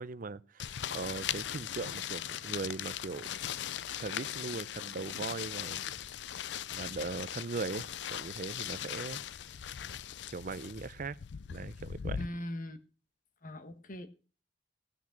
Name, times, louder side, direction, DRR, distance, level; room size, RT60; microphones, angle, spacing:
voice 1, 0.0-3.3 4.0-5.8 6.7-9.2 10.3-11.2 11.5-12.2, right 4 dB, 50° right, 0.6 m, -39 dB
sound 1, 0.6-12.3, left 10 dB, 85° left, 0.5 m, -39 dB
voice 2, 12.2-12.8 13.4-14.1, equal, 50° left, 1.3 m, -40 dB
16.5 x 6.1 x 5.8 m
head